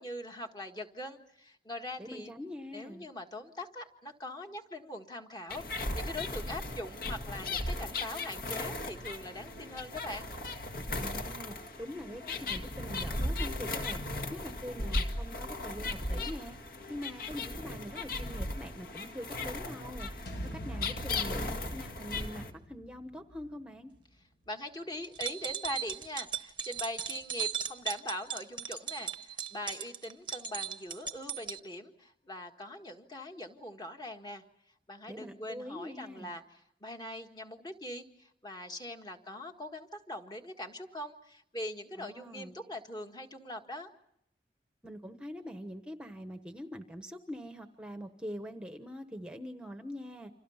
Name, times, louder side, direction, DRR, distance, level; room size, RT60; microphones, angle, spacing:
voice 1, 0.0-2.3 2.7-10.3 24.5-34.4 34.9-43.9, left 1 dB, 25° left, 4 dB, 1.7 m, -42 dB
voice 2, 2.0-3.1 11.0-14.0 14.3-16.6 16.9-20.1 20.5-23.9 35.1-36.3 42.0-42.6 44.8-50.3, equal, 5° right, 6 dB, 1.1 m, -43 dB
sound 1, 5.5-22.5, left 2 dB, 55° left, 1.8 m, -37 dB
sound 2, 20.3-24.5, right 1 dB, 70° left, 3.7 m, -44 dB
sound 3, 25.0-31.6, right 8 dB, 25° right, 0.9 m, -37 dB
29.5 x 26.5 x 5.7 m, 0.74 s
head